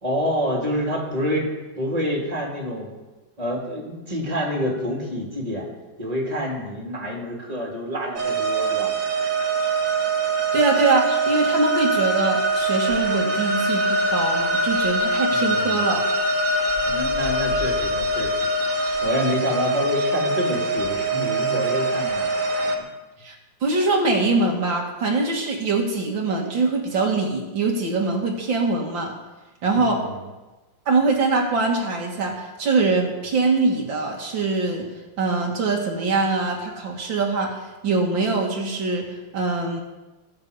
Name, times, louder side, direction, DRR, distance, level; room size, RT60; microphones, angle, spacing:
voice 1, 0.0-1.5 1.8-2.9 3.4-5.7 6.0-8.9 15.3-16.0 16.9-18.4 19.0-22.3 29.7-30.2, equal, 20° right, -2 dB, 3.2 m, -27 dB
sound 1, 8.2-22.8, right 2 dB, 45° right, 1.8 m, -23 dB
voice 2, 10.5-16.0 23.2-23.4 23.6-29.1 29.6-30.0 30.9-34.9 35.2-39.8, right 3 dB, 75° right, 0 dB, 2.4 m, -23 dB
20.5 x 7.3 x 5.3 m, 1.2 s
omnidirectional pair, 2.1 m